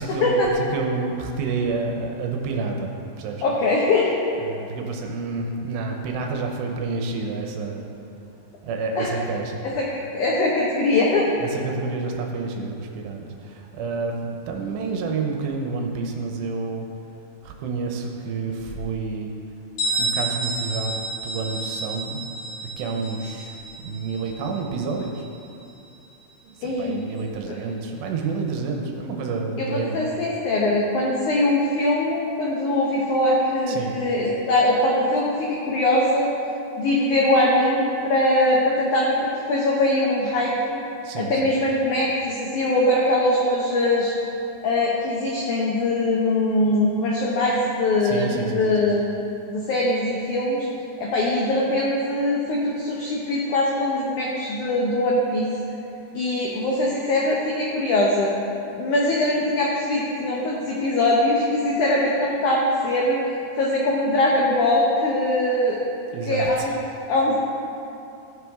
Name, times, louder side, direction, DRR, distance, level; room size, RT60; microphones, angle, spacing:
voice 1, 0.0-2.9 3.2-3.4 4.4-7.9 8.6-9.6 11.3-16.9 17.4-19.3 20.0-22.2 22.8-25.3 26.6-30.0 33.7-33.9 41.0-41.5 48.0-48.8 66.1-66.7, right 4 dB, 80° right, 2 dB, 3.0 m, -29 dB
voice 2, 3.4-4.1 9.0-9.2 9.8-9.9 10.1-11.3 26.6-27.0 27.5-27.6 29.6-36.3 36.8-40.8 41.2-44.1 44.6-49.0 49.5-50.7 51.0-55.5 56.1-58.3 58.8-63.2 63.6-65.8 66.3-66.8 67.1-67.3, left 1 dB, 85° left, -4 dB, 1.7 m, -22 dB
Bell, 19.8-25.3, right 2 dB, 55° left, 4.1 m, -30 dB
15.5 x 6.8 x 3.6 m, 2.7 s
omnidirectional pair, 5.0 m